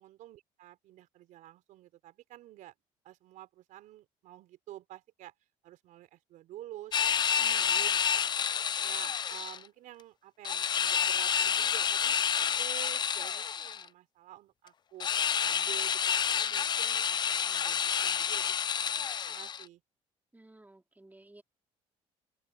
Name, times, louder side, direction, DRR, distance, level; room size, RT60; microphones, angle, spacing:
voice 1, 0.0-2.7 3.0-5.3 5.6-7.1 7.4-7.9 8.3-8.4 8.8-15.1 15.4-19.8, right 14 dB, 70° right, 4.4 m, -50 dB
sound 1, 6.9-9.6 10.4-13.8 15.0-19.6, left 8 dB, 35° left, 0.3 m, -29 dB
voice 2, 7.4-8.0 20.3-21.4, right 2 dB, 10° right, 4.9 m, -56 dB
open air
supercardioid pair, 70°, 14 cm